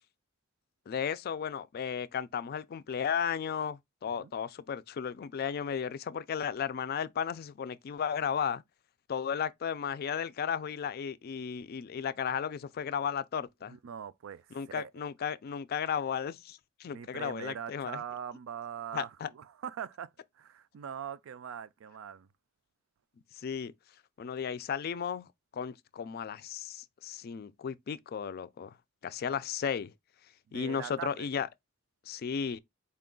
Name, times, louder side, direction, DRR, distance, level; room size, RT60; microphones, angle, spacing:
voice 1, 0.9-8.6 9.1-13.8 14.5-18.0 18.9-19.3 23.4-23.7 24.2-25.3 25.5-28.7 29.0-29.9 30.5-31.5 32.1-32.6, left 7 dB, 50° left, 0.3 m, -34 dB
voice 2, 13.7-14.9 16.9-20.1 20.4-22.3 30.5-31.3, right 8 dB, 85° right, 0.4 m, -42 dB
4.3 x 2.3 x 3.7 m
head